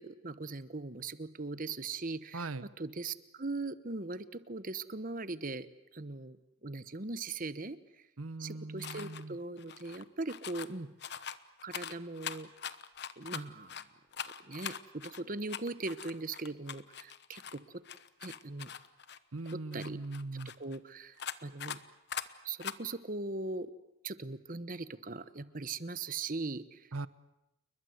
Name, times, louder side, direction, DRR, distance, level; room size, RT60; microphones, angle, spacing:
voice 1, 0.0-5.7 5.9-6.4 6.6-7.8 8.4-10.9 11.6-12.5 13.2-13.7 14.4-17.6 18.2-18.7 19.5-20.0 20.6-21.2 21.4-21.8 22.4-23.7 24.0-26.9, right 3 dB, 40° right, 14 dB, 1.1 m, -40 dB
voice 2, 2.3-2.7 8.2-9.4 19.3-20.5 26.9-27.1, right 3 dB, 80° right, 16 dB, 0.9 m, -40 dB
sound 1, 8.8-9.2 9.6-10.7 11.0-13.8 14.1-17.6 17.8-20.8 21.2-21.8 22.1-22.3 22.6-22.8, left 8 dB, 50° left, 1.1 m, -42 dB
29.5 x 22.0 x 8.0 m, 0.92 s
head